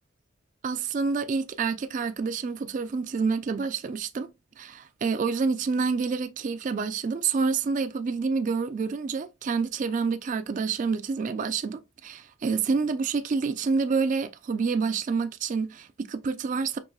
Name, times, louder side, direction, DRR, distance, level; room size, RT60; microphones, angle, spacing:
voice 1, 0.6-4.3 4.6-16.8, right 5 dB, 40° right, 0.3 m, -28 dB
4.7 x 3.1 x 2.3 m
head